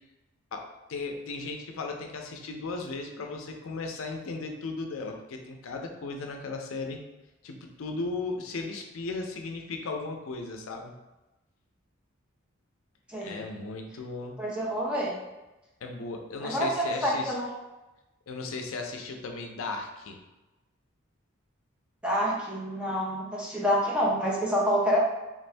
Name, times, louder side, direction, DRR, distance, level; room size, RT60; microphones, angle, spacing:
voice 1, 0.5-7.0 7.4-10.9 13.2-14.4 15.8-17.4 18.3-20.2, left 3 dB, 80° left, 3 dB, 0.5 m, -36 dB
voice 2, 13.1-13.4 14.4-15.1 16.4-17.5 22.0-25.0, equal, 5° right, -5 dB, 0.7 m, -27 dB
3.5 x 2.6 x 3.2 m, 1.0 s
head